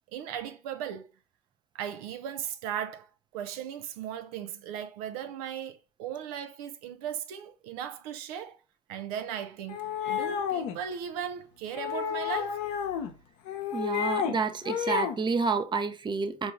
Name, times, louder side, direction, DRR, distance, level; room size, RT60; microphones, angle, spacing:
voice 1, 0.1-1.1 1.7-8.6 8.9-12.6, right 9 dB, 75° right, 0.4 m, -37 dB
sound 1, 9.7-10.8 11.7-13.1 13.5-14.4 14.6-15.2, left 8 dB, 70° left, 0.8 m, -31 dB
voice 2, 13.7-16.5, right 4 dB, 25° right, 0.6 m, -29 dB
4.7 x 2.6 x 3.4 m
hypercardioid pair, 65°, 19 cm